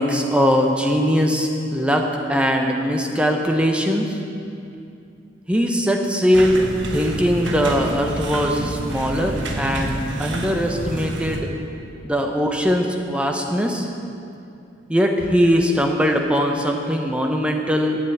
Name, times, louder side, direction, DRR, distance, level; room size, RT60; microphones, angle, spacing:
voice 1, 0.0-4.2 5.5-6.6 6.9-11.5 12.0-13.9 14.9-18.0, equal, 5° right, 2 dB, 0.7 m, -20 dB
sound 1, 6.3-11.4, right 1 dB, 85° right, 1.1 m, -28 dB
8.7 x 8.0 x 8.3 m, 2.6 s
head